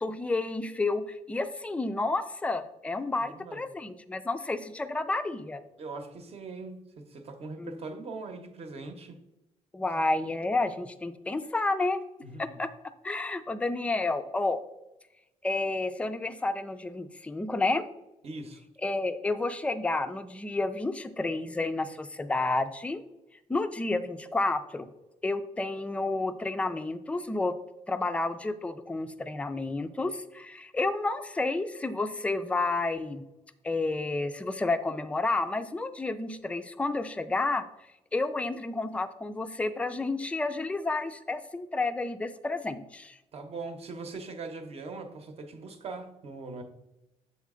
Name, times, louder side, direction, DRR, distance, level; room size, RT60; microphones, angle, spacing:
voice 1, 0.0-5.6 7.6-7.8 9.7-12.0 12.4-12.7 13.0-14.6 15.4-17.9 18.8-23.0 23.5-24.9 25.2-27.5 27.9-33.2 33.6-37.6 38.1-43.2, left 2 dB, 10° left, 9 dB, 0.4 m, -30 dB
voice 2, 3.1-3.6 5.8-9.2 12.2-12.6 18.2-18.6 43.3-46.6, right 3 dB, 50° right, 6 dB, 0.9 m, -41 dB
7.3 x 4.1 x 3.6 m, 0.91 s
cardioid pair, 120°, 13 cm